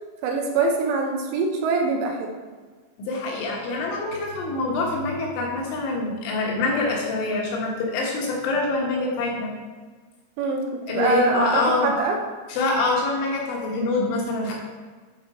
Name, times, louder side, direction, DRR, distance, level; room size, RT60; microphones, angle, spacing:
voice 1, 0.2-2.4 10.4-12.2, right 4 dB, 80° right, 2 dB, 3.3 m, -24 dB
voice 2, 3.1-9.5 10.9-11.9 12.5-14.5, left 3 dB, 75° left, -1 dB, 3.5 m, -25 dB
9.6 x 4.4 x 4.8 m, 1.4 s
omnidirectional pair, 5.8 m